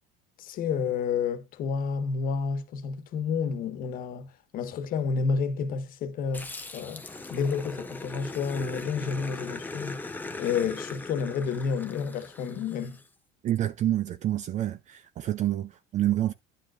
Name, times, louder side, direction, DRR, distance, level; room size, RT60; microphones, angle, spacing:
voice 1, 0.4-10.0 10.4-13.0, left 5 dB, 45° left, 1.4 m, -30 dB
Growling, 6.3-13.0, left 3 dB, 10° left, 0.9 m, -40 dB
voice 2, 13.4-16.3, right 13 dB, 40° right, 0.6 m, -28 dB
11.0 x 7.6 x 2.5 m
cardioid pair, 130°, 19 cm